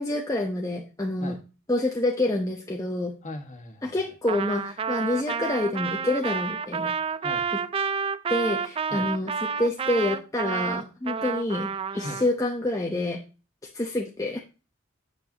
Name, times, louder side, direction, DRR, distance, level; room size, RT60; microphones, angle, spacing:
voice 1, 0.0-1.4 1.7-3.1 3.8-6.9 8.3-11.7 11.9-13.2 13.7-14.4, left 1 dB, 15° left, 0 dB, 0.8 m, -27 dB
voice 2, 3.2-4.1 7.2-7.4 8.9-9.1 11.9-12.2, left 2 dB, 35° left, 5 dB, 1.5 m, -39 dB
Trumpet, 4.3-12.3, right 6 dB, 25° right, 0.3 m, -30 dB
8.5 x 6.9 x 2.8 m, 0.33 s
head